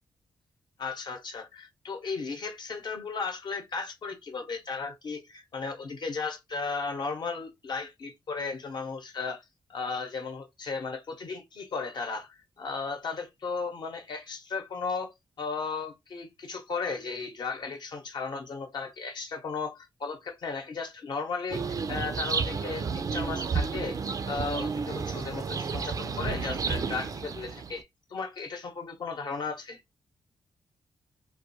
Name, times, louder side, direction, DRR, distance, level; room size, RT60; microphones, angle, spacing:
voice 1, 0.8-9.4 9.7-15.1 15.4-24.0 24.3-27.8 28.1-29.8, left 4 dB, 60° left, 0.8 m, -35 dB
sound 1, 21.5-27.8, right 5 dB, 45° right, 0.4 m, -31 dB
2.2 x 2.2 x 2.7 m
supercardioid pair, 55°, 8 cm